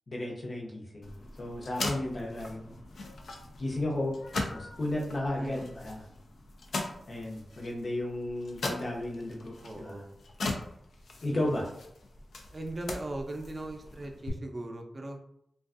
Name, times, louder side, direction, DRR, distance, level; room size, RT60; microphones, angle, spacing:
voice 1, 0.1-2.8 3.6-6.0 7.1-10.0 11.2-11.7, left 1 dB, 55° left, -2 dB, 0.8 m, -34 dB
sound 1, 1.0-14.3, left 2 dB, 80° left, 0.4 m, -40 dB
voice 2, 5.4-5.8 9.6-10.1 11.2-11.5 12.5-15.2, right 2 dB, 35° right, 3 dB, 0.4 m, -39 dB
2.5 x 2.3 x 2.4 m, 0.74 s
cardioid pair, 65°, 0 cm